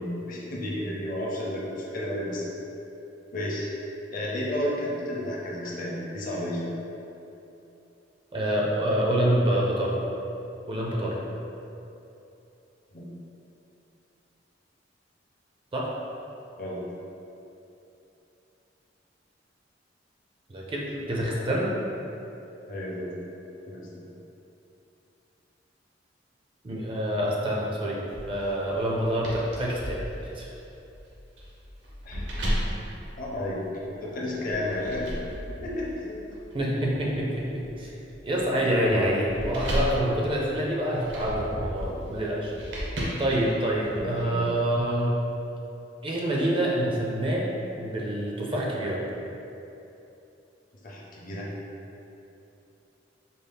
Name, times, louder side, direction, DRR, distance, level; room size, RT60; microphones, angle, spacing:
voice 1, 0.0-2.4 3.3-3.7 4.1-6.7 12.9-13.0 16.6-16.8 22.7-23.1 23.7-24.0 32.0-32.2 33.2-33.6 33.9-35.1 35.6-36.3 43.9-44.4 50.8-51.5, left 1 dB, 45° left, -4 dB, 0.6 m, -32 dB
voice 2, 8.3-10.0 10.7-11.2 15.7-15.9 20.5-21.7 26.6-28.0 28.3-30.5 36.5-38.0 38.2-42.5 43.2-45.2 46.0-47.5 47.8-49.0, right 1 dB, 30° right, -4 dB, 0.4 m, -26 dB
sound 1, 28.1-33.9 34.5-44.0, equal, 70° right, 0.7 m, -35 dB
4.0 x 2.0 x 3.4 m, 2.9 s
head